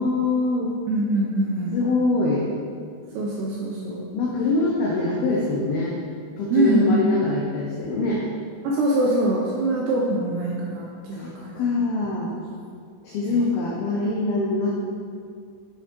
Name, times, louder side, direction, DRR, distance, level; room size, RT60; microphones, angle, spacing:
voice 1, 0.0-0.7 1.7-2.5 4.1-6.0 6.4-8.3 11.1-12.3 13.0-14.8, left 3 dB, 80° left, -3 dB, 2.1 m, -24 dB
voice 2, 0.9-1.8 3.1-4.1 6.5-7.0 8.6-11.6 13.3-13.4, right 1 dB, 80° right, -3 dB, 2.4 m, -23 dB
8.5 x 8.5 x 4.6 m, 2.2 s
omnidirectional pair, 5.8 m